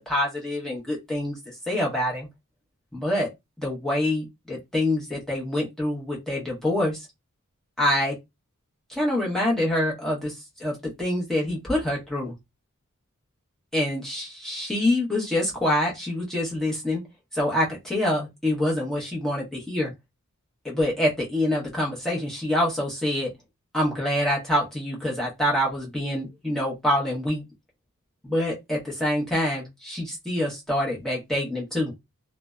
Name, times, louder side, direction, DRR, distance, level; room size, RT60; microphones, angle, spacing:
voice 1, 0.0-1.4 1.7-2.3 2.9-3.3 3.6-7.1 7.8-8.2 8.9-10.3 10.6-12.3 13.7-17.0 17.3-19.9 20.6-23.3 23.7-27.4 28.2-31.9, left 1 dB, ahead, 0.8 m, -26 dB
2.6 x 2.1 x 2.3 m
head